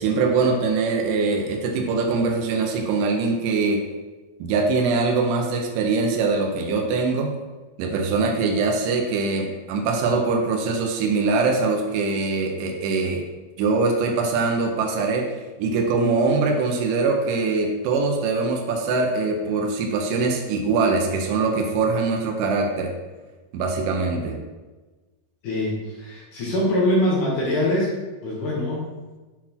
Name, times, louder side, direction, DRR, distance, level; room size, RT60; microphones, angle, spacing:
voice 1, 0.0-3.8 4.4-7.4 7.8-13.2 13.6-15.3 15.6-22.9 23.5-24.4, right 4 dB, 90° right, 2 dB, 1.9 m, -22 dB
voice 2, 25.4-27.9 28.2-28.9, left 1 dB, 65° left, -4 dB, 2.2 m, -23 dB
7.6 x 4.1 x 4.3 m, 1.2 s
omnidirectional pair, 4.9 m